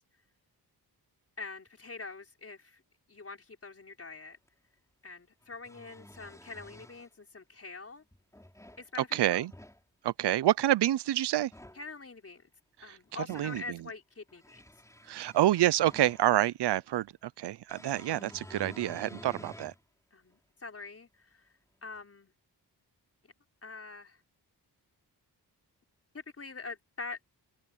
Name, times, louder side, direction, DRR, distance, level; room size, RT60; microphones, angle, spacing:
voice 1, 1.4-2.8 3.1-4.4 5.0-8.0 8.8-9.5 11.7-12.5 12.8-14.6 20.1-21.5 21.8-22.3 23.6-24.2 26.1-27.2, left 4 dB, 35° left, 5.3 m, -44 dB
sound 1, 4.5-4.6 5.4-7.1 8.1-8.9 9.3-9.8 11.4-11.8 12.8-13.7 14.3-16.5 17.7-19.8 20.3-20.4 21.9-22.0, left 1 dB, 10° left, 5.4 m, -50 dB
voice 2, 9.1-9.5 10.0-11.5 13.3-13.8 15.1-19.7, right 13 dB, 85° right, 0.6 m, -27 dB
wide cardioid pair, 115°, 39 cm